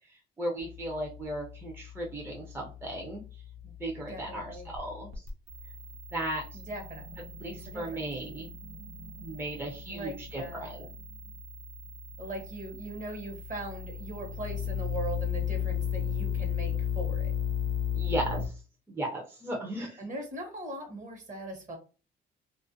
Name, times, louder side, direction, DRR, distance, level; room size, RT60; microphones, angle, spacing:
voice 1, 0.4-3.2 3.6-5.2 6.1-6.4 7.4-8.5 9.2-10.9 18.0-18.6 18.9-20.0, right 1 dB, 10° right, 0 dB, 0.5 m, -36 dB
sound 1, 0.6-18.5, left 7 dB, 85° right, 0.6 m, -36 dB
voice 2, 4.1-4.7 6.5-8.0 9.9-10.8 12.2-17.3 20.0-21.8, right 1 dB, 40° right, 4 dB, 1.0 m, -40 dB
2.4 x 2.1 x 2.6 m, 0.35 s
cardioid pair, 90°, 20 cm